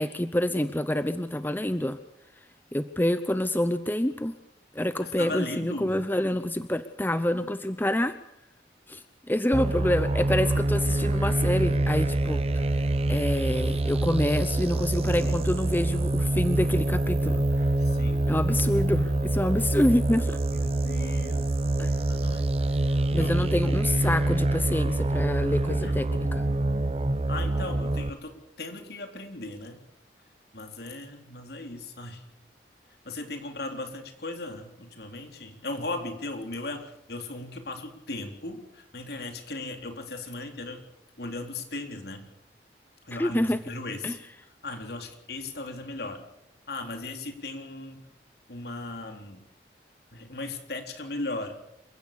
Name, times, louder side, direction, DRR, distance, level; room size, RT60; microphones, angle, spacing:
voice 1, 0.0-2.0 2.7-4.3 4.7-8.1 8.9-12.8 13.1-17.4 18.3-20.4 21.8-21.9 23.1-26.5 43.2-43.6 44.0-44.2, left 1 dB, 10° left, 11 dB, 0.7 m, -27 dB
voice 2, 5.0-6.0 17.8-18.3 20.5-21.6 22.1-23.5 25.8-26.0 27.3-29.8 30.5-32.2 33.1-40.8 41.2-42.3 43.0-44.2 44.6-46.3 46.7-48.0 48.5-49.4 50.1-51.7, left 2 dB, 65° left, 5 dB, 3.9 m, -37 dB
sound 1, 9.5-28.1, right 2 dB, 35° right, 0.7 m, -26 dB
28.0 x 16.5 x 6.9 m, 0.81 s
head